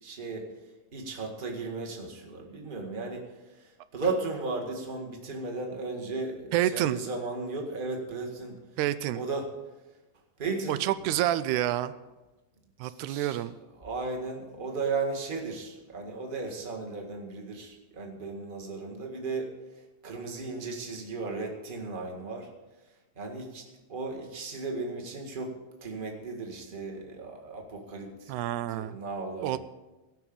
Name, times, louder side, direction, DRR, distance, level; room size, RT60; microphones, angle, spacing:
voice 1, 0.0-0.5 0.9-3.2 3.6-8.6 9.1-9.5 10.4-11.1 12.8-13.4 13.8-19.5 20.0-22.5 23.1-23.6 23.9-25.5 25.8-28.3 28.7-29.6, right 3 dB, 20° right, 1 dB, 1.6 m, -35 dB
voice 2, 6.5-7.0 8.8-9.2 10.7-11.9 12.8-13.5 28.3-29.0 29.4-29.6, right 13 dB, 85° right, 14 dB, 2.0 m, -28 dB
18.0 x 6.0 x 8.8 m, 1.1 s
omnidirectional pair, 3.4 m